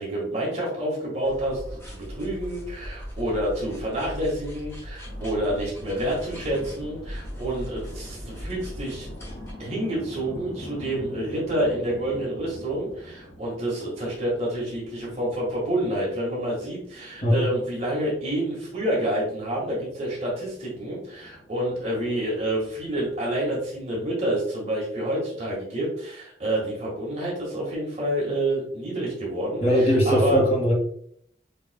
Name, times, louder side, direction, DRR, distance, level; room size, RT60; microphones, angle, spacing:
voice 1, 0.0-9.1 9.6-30.4, right 1 dB, 40° right, -4 dB, 1.6 m, -28 dB
sound 1, 1.2-9.5, equal, 15° left, 1.3 m, -39 dB
sound 2, 5.1-23.9, equal, 55° left, 1.9 m, -45 dB
voice 2, 29.6-30.7, equal, 40° left, -3 dB, 2.0 m, -20 dB
7.2 x 3.2 x 2.3 m, 0.66 s
head